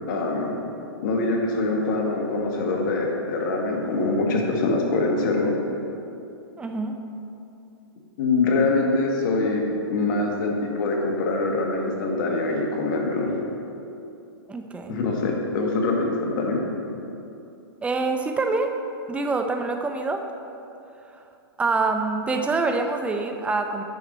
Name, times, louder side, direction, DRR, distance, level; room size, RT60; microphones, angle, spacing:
voice 1, 0.1-0.5 1.0-5.6 8.2-13.3 14.9-17.0, left 3 dB, 55° left, 0 dB, 1.5 m, -24 dB
voice 2, 6.6-6.9 14.5-15.0 17.8-18.7 19.1-20.2 21.6-23.8, right 3 dB, 10° right, 5 dB, 0.5 m, -25 dB
9.3 x 6.6 x 4.1 m, 2.8 s
hypercardioid pair, 135°, 13 cm